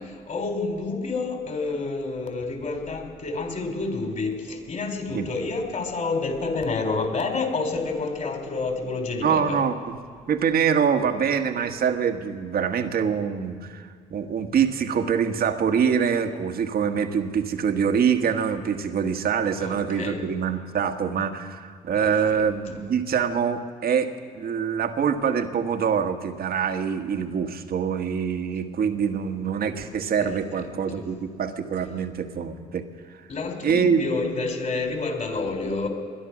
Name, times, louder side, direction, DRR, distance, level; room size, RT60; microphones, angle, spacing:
voice 1, 0.0-9.6 19.6-20.3 21.9-22.8 30.2-31.0 33.3-35.9, left 3 dB, 45° left, 3 dB, 4.3 m, -29 dB
voice 2, 9.2-9.9 10.3-32.8 33.1-33.2 33.6-34.0, right 7 dB, 55° right, 7 dB, 1.6 m, -25 dB
21.5 x 11.0 x 6.2 m, 2.2 s
hypercardioid pair, 50°, 19 cm